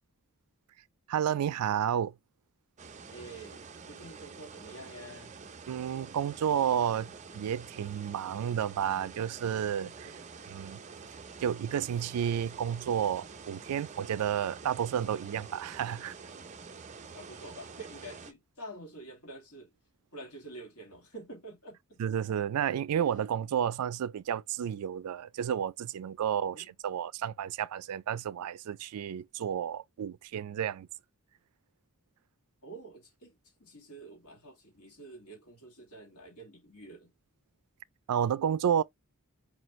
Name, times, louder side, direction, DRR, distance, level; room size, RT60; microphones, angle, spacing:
voice 1, 1.1-2.1 5.7-10.1 10.5-10.8 11.4-16.1 22.0-30.9 38.1-38.8, right 9 dB, 85° right, 0.3 m, -31 dB
sound 1, 2.8-18.3, right 5 dB, 30° right, 0.5 m, -48 dB
voice 2, 3.1-5.3 9.8-10.3 17.1-19.7 20.1-22.0 26.4-26.7 32.6-37.1, right 2 dB, 85° left, 2.2 m, -48 dB
4.9 x 2.5 x 3.0 m
head